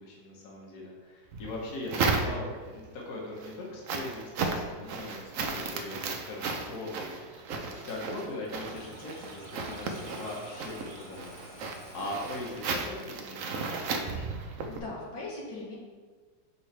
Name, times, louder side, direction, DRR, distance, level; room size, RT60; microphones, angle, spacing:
voice 1, 0.0-14.3, left 2 dB, 65° left, -3 dB, 1.6 m, -41 dB
sound 1, 1.3-2.7 3.2-14.8, right 4 dB, 65° right, 0.9 m, -35 dB
Engine starting, 7.8-13.2, equal, 20° left, 1.1 m, -49 dB
voice 2, 14.7-15.8, left 2 dB, 90° left, -5 dB, 2.2 m, -39 dB
6.3 x 5.5 x 3.3 m, 1.4 s
omnidirectional pair, 1.9 m